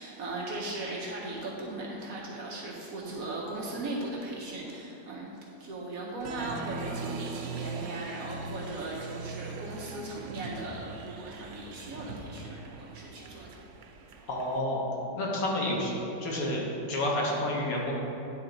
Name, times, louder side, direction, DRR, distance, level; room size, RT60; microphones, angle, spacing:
voice 1, 0.0-13.5, right 2 dB, 60° right, -3 dB, 1.1 m, -38 dB
Applause, 6.2-14.6, right 3 dB, 85° right, 0.7 m, -41 dB
voice 2, 14.3-14.8 15.1-15.9 16.2-16.6 16.9-18.0, left 1 dB, 60° left, -3 dB, 1.3 m, -29 dB
9.8 x 3.5 x 3.8 m, 2.9 s
omnidirectional pair, 1.9 m